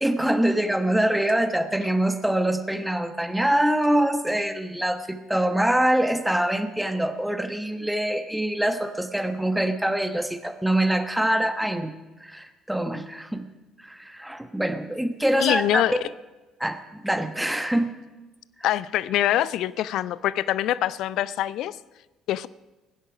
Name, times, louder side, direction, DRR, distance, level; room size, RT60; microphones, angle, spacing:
voice 1, 0.0-11.9 12.2-13.4 13.8-16.1 16.6-17.9, right 1 dB, 5° right, 9 dB, 1.1 m, -24 dB
voice 2, 15.4-15.9 18.6-21.8 22.3-22.5, left 13 dB, 60° left, 19 dB, 0.4 m, -24 dB
17.0 x 10.0 x 4.9 m, 1.1 s
figure-of-eight pair, 50°, 0 cm